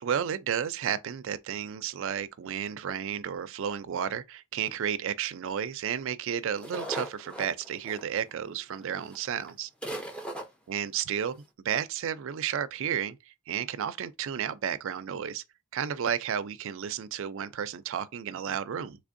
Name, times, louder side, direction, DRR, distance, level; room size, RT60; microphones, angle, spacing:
voice 1, 0.0-9.7 10.7-15.4 15.7-19.0, right 8 dB, 65° right, 0.4 m, -32 dB
sound 1, 6.6-8.5 9.1-9.2 9.4-9.5 9.8-10.4, right 1 dB, 5° left, 0.6 m, -38 dB
3.4 x 3.3 x 2.5 m
head